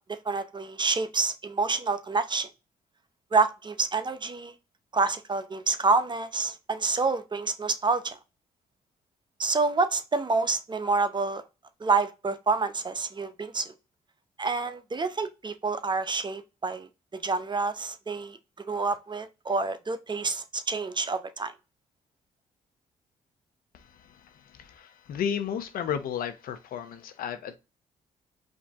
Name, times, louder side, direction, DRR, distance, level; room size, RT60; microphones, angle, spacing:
voice 1, 0.0-2.5 3.3-4.5 4.9-8.2 9.4-11.4 11.8-13.7 14.4-16.9 17.2-18.4 18.7-21.5, right 4 dB, 30° right, 0.7 m, -28 dB
voice 2, 23.7-27.6, left 8 dB, 75° left, 0.8 m, -34 dB
5.1 x 2.7 x 3.5 m
cardioid pair, 65°, 15 cm